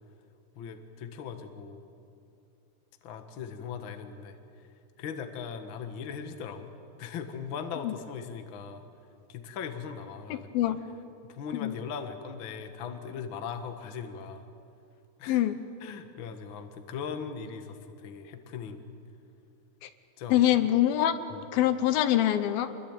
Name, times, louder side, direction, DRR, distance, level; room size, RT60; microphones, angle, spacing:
voice 1, 0.5-1.9 3.0-4.4 5.0-6.7 7.0-8.8 9.3-10.5 11.3-14.4 15.2-15.4 15.8-18.8 20.2-20.4 21.3-21.4, left 6 dB, 55° left, 7 dB, 1.4 m, -39 dB
voice 2, 15.3-15.6 19.8-19.9 20.3-21.3 21.5-22.7, left 12 dB, 75° left, 11 dB, 2.5 m, -24 dB
26.0 x 22.5 x 9.0 m, 2.6 s
omnidirectional pair, 4.6 m